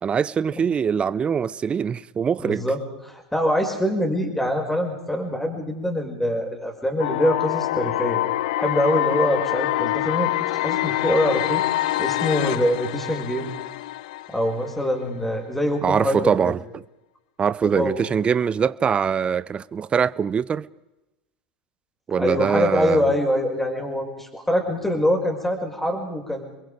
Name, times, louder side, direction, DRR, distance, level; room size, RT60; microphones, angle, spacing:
voice 1, 0.0-2.7 15.8-16.8 17.4-20.6 22.1-23.1, right 7 dB, 30° right, 0.8 m, -23 dB
voice 2, 2.4-2.8 3.0-8.2 8.6-11.6 12.0-13.5 14.3-16.3 17.6-18.1 22.2-26.5, left 1 dB, 5° left, 6.1 m, -24 dB
sound 1, 7.0-15.0, left 15 dB, 75° left, 0.7 m, -25 dB
29.5 x 22.5 x 5.2 m
hypercardioid pair, 90°, 4 cm